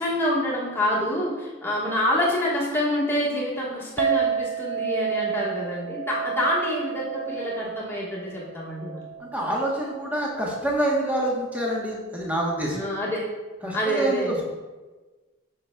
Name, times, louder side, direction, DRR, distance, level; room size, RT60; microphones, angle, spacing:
voice 1, 0.0-9.1 12.7-13.3 13.7-14.4, left 1 dB, 10° left, -6 dB, 1.3 m, -27 dB
Chink clink, 4.0-10.3, right 7 dB, 55° right, 0.4 m, -30 dB
voice 2, 9.2-12.8 13.6-14.4, right 1 dB, 5° right, -3 dB, 1.0 m, -26 dB
6.8 x 6.5 x 2.3 m, 1.3 s
head